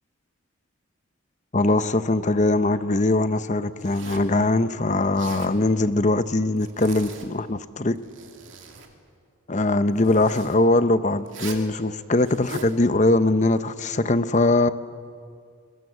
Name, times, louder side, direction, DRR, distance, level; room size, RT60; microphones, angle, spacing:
voice 1, 1.5-8.0 9.5-14.7, left 2 dB, 35° left, 12 dB, 0.8 m, -21 dB
Zipper (clothing), 3.8-4.4 5.0-5.5 6.6-7.3 7.9-8.9 10.0-10.6 11.3-11.7 12.2-12.7, right 4 dB, 60° right, 2.7 m, -40 dB
29.0 x 22.5 x 8.1 m, 2.1 s
head